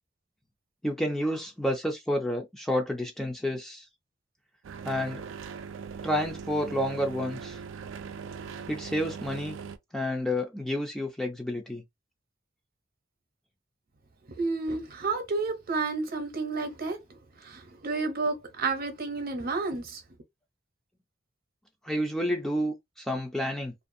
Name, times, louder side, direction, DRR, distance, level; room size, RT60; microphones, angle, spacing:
voice 1, 0.8-3.9 4.8-5.2 6.0-7.6 8.7-9.6 9.9-11.8 21.8-23.7, equal, 5° left, 0.4 m, -30 dB
sound 1, 4.6-9.8, right 6 dB, 75° right, 0.4 m, -40 dB
voice 2, 14.4-20.0, right 3 dB, 50° right, 0.8 m, -31 dB
2.5 x 2.2 x 2.6 m
head